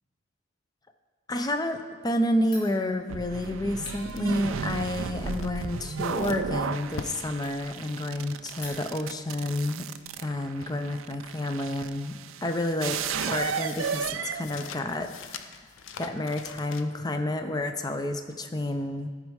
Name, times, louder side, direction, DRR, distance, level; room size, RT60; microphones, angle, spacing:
voice 1, 1.3-9.9 10.2-12.1 12.4-15.6 16.0-19.1, left 1 dB, 20° left, 7 dB, 0.5 m, -30 dB
Fire, 2.4-9.2, left 1 dB, 45° left, 2.3 m, -51 dB
sound 1, 3.1-15.1, right 6 dB, 70° right, 0.4 m, -34 dB
sound 2, 3.4-10.1 10.4-11.5 11.8-17.1, left 6 dB, 65° left, 0.5 m, -45 dB
13.0 x 5.3 x 4.7 m, 1.5 s
head